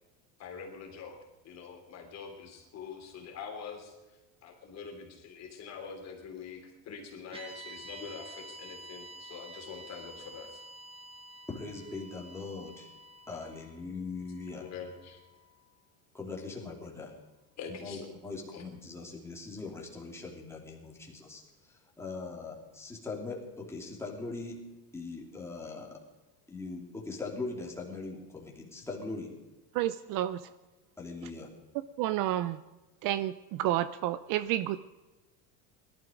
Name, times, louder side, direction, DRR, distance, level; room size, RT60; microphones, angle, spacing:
voice 1, 0.4-1.2 1.4-10.6 14.6-15.2 17.6-18.2 18.5-18.6, left 6 dB, 35° left, 2 dB, 3.3 m, -45 dB
sound 1, 7.3-15.6, right 2 dB, 15° right, 1.5 m, -49 dB
voice 2, 11.5-12.9 13.3-14.6 16.1-17.1 17.8-24.6 24.9-26.0 26.5-29.3 31.0-31.5, left 3 dB, 5° left, -2 dB, 3.0 m, -41 dB
voice 3, 29.7-30.4 32.0-32.6 33.0-34.8, right 13 dB, 50° right, 15 dB, 0.6 m, -30 dB
18.5 x 12.5 x 5.2 m, 1.1 s
cardioid pair, 150°, 43 cm